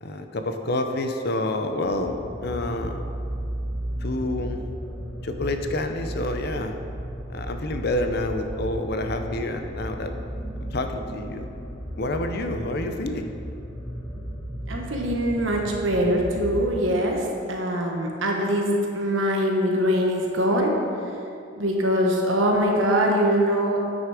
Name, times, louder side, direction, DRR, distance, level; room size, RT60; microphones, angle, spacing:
voice 1, 0.0-3.0 4.0-4.7 5.2-6.7 7.3-10.1 10.7-11.5 12.0-13.3, left 1 dB, 55° left, 6 dB, 0.7 m, -28 dB
sound 1, 1.8-17.2, equal, 10° left, 1.4 m, -34 dB
voice 2, 14.7-20.8 21.6-23.8, equal, 80° right, 0 dB, 1.3 m, -23 dB
9.3 x 6.3 x 4.9 m, 2.6 s
head